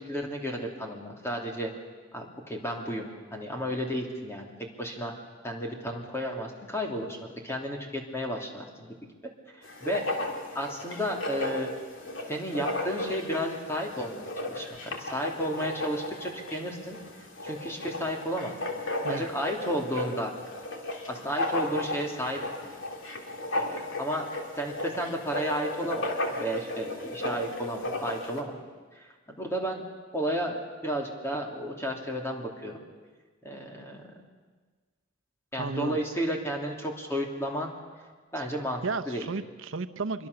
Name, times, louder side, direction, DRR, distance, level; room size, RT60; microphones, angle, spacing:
voice 1, 0.0-1.7 2.1-4.5 4.8-5.1 5.4-7.2 7.4-9.0 9.8-10.0 10.5-11.7 12.3-17.0 17.4-18.5 19.1-20.3 21.1-22.7 23.5-24.3 24.6-26.1 26.4-28.6 28.9-29.1 29.4-29.8 30.1-32.8 33.4-34.2 35.5-37.7 38.3-39.3, equal, 15° left, 1 dB, 3.0 m, -32 dB
Writing, 9.6-28.4, left 1 dB, 70° left, 2.8 m, -35 dB
voice 2, 35.6-36.0 38.4-38.5 38.8-40.3, right 4 dB, 75° right, 8 dB, 0.8 m, -33 dB
25.0 x 23.0 x 6.9 m, 1.4 s
head